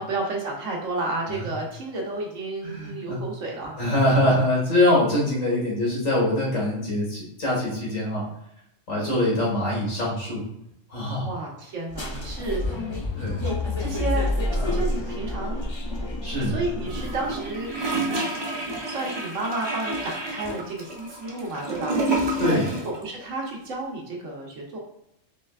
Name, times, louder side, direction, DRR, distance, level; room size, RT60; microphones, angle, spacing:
voice 1, 0.0-3.7 11.2-12.8 13.4-14.3 14.7-15.6 16.4-18.2 18.8-22.0 22.4-24.8, right 2 dB, 75° right, -1 dB, 1.3 m, -31 dB
voice 2, 2.6-3.2 3.8-8.2 8.9-10.4 10.9-11.3 13.2-13.4 14.6-14.8 16.2-16.6 22.4-22.7, left 1 dB, 85° left, -4 dB, 1.9 m, -23 dB
sound 1, 11.9-17.5, left 2 dB, 35° left, 0.4 m, -28 dB
Gurgling / Toilet flush, 16.9-23.0 23.2-23.3, right 2 dB, 30° right, 0.5 m, -29 dB
4.4 x 3.2 x 2.3 m, 0.79 s
omnidirectional pair, 1.3 m